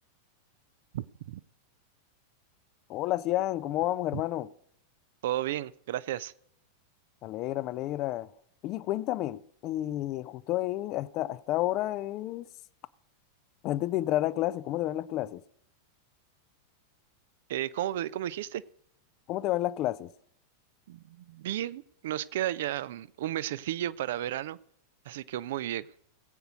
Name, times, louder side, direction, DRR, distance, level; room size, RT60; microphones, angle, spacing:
voice 1, 0.9-1.4 5.2-6.3 17.5-18.6 20.9-24.6 25.1-25.9, right 13 dB, 55° right, 0.4 m, -33 dB
voice 2, 2.9-4.5 7.2-8.3 8.6-12.5 13.6-15.4 19.3-20.1, left 15 dB, 40° left, 0.5 m, -30 dB
19.0 x 8.0 x 5.1 m
figure-of-eight pair, 90°, 0 cm